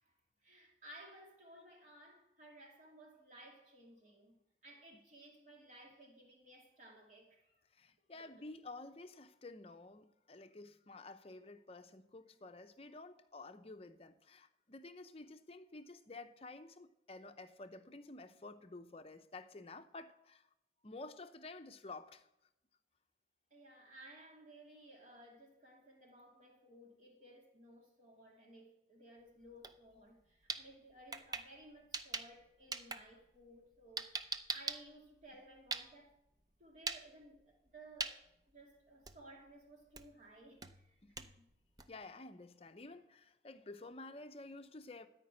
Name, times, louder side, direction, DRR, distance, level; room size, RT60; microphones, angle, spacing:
voice 1, 0.4-7.6 8.1-8.3 23.5-36.2 36.6-38.2 38.5-41.5, right 1 dB, 45° right, 2.6 m, -58 dB
voice 2, 7.7-20.5 20.8-22.3 41.0-41.2 41.9-45.1, left 2 dB, 35° left, 0.6 m, -51 dB
sound 1, 29.5-29.7 30.1-32.4 32.7-36.2 36.8-37.0 37.4-37.7 38.0-38.2 38.6-38.7 39.1-39.4 40.0-40.2 40.6-42.0, right 4 dB, 20° right, 0.5 m, -42 dB
13.5 x 5.2 x 8.7 m
head